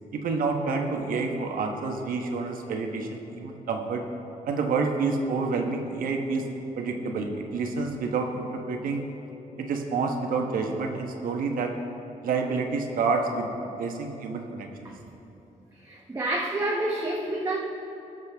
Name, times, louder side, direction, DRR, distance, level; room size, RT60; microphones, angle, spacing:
voice 1, 0.1-4.0 4.5-6.5 6.8-9.0 9.6-11.7 12.2-14.9, right 4 dB, 80° right, 3 dB, 1.2 m, -28 dB
voice 2, 15.8-17.6, right 1 dB, 20° right, -2 dB, 0.9 m, -28 dB
18.5 x 6.7 x 3.5 m, 3.0 s
cardioid pair, 120°, 14 cm